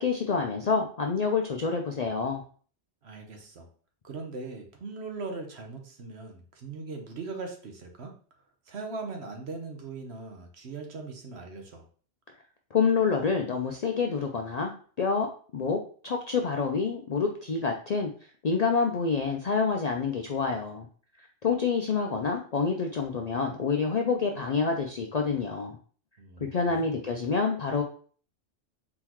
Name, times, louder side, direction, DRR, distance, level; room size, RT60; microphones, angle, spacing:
voice 1, 0.0-2.4 12.7-15.3 15.5-18.1 18.4-20.9 21.2-25.8 26.4-27.8, left 5 dB, 60° left, 3 dB, 0.4 m, -27 dB
voice 2, 3.0-3.7 4.0-8.1 8.7-11.8 26.2-26.9, right 3 dB, 65° right, 3 dB, 1.2 m, -40 dB
4.2 x 3.8 x 2.9 m, 0.44 s
omnidirectional pair, 1.2 m